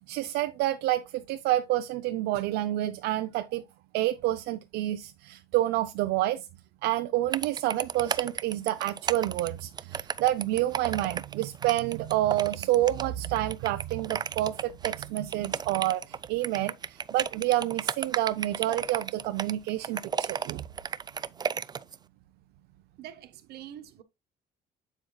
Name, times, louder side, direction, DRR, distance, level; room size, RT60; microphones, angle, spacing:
voice 1, 0.1-3.7 3.9-6.5 6.8-20.6, right 14 dB, 90° right, 0.5 m, -28 dB
sound 1, 7.3-22.0, right 6 dB, 25° right, 0.4 m, -33 dB
voice 2, 23.0-24.0, right 11 dB, 75° right, 1.2 m, -45 dB
7.7 x 7.2 x 2.2 m
cardioid pair, 110°, 17 cm